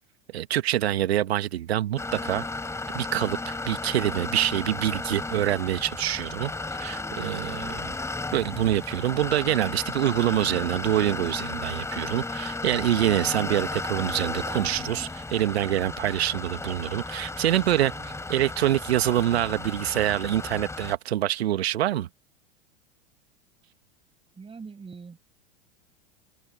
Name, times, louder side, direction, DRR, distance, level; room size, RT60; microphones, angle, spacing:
voice 1, 0.3-2.4 2.9-6.5 6.8-7.9 8.3-17.9 18.3-22.1, right 13 dB, 75° right, 1.6 m, -25 dB
sound 1, 2.0-21.0, left 3 dB, 10° left, 3.2 m, -34 dB
voice 2, 17.8-18.2 24.4-25.2, right 5 dB, 15° right, 5.8 m, -43 dB
open air
hypercardioid pair, 95°, 32 cm